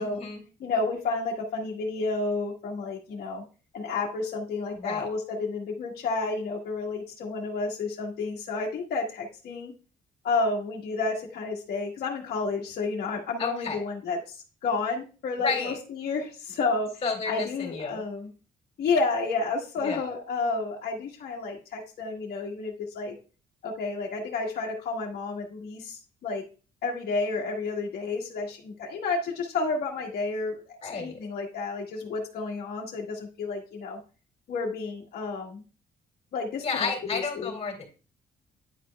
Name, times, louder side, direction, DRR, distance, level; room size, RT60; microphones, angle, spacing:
voice 1, 0.0-0.4 4.8-5.1 13.4-13.8 15.4-15.8 17.0-18.0 19.8-20.0 30.8-31.3 36.6-37.9, left 4 dB, 35° left, 1 dB, 2.3 m, -32 dB
voice 2, 0.6-3.4 3.7-9.7 10.2-16.9 17.3-18.3 18.8-23.1 23.6-26.4 26.8-34.0 34.5-35.6 36.3-37.5, left 3 dB, 70° left, -3 dB, 1.2 m, -31 dB
9.9 x 5.1 x 2.2 m, 0.35 s
cardioid pair, 100°, 16 cm